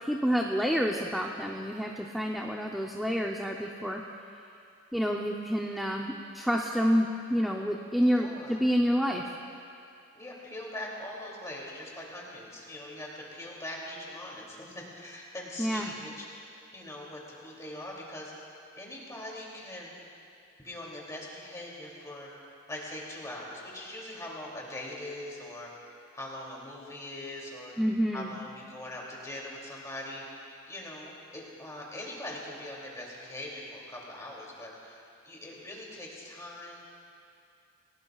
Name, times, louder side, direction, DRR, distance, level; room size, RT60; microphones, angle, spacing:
voice 1, 0.0-4.0 4.9-9.2 15.6-15.9 27.8-28.3, equal, ahead, -1 dB, 0.6 m, -28 dB
voice 2, 8.1-8.6 10.1-16.3 16.7-18.3 18.8-19.9 20.6-22.3 22.7-25.7 26.1-27.7 28.1-36.8, left 1 dB, 15° left, -4 dB, 2.8 m, -42 dB
28.5 x 18.0 x 2.4 m, 2.6 s
head